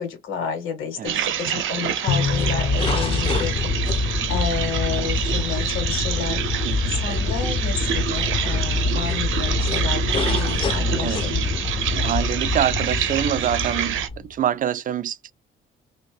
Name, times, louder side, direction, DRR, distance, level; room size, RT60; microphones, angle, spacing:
voice 1, 0.0-6.4 6.9-11.5, left 6 dB, 85° left, 1.5 m, -31 dB
sound 1, 1.0-14.1, right 10 dB, 80° right, 0.6 m, -27 dB
Bowed string instrument, 2.1-4.7, left 7 dB, 65° left, 0.8 m, -29 dB
sound 2, 2.1-14.3, left 3 dB, 30° left, 0.4 m, -25 dB
voice 2, 6.6-7.0 10.8-11.3 11.9-15.3, right 10 dB, 45° right, 0.4 m, -26 dB
2.9 x 2.8 x 3.2 m
cardioid pair, 90°, 20 cm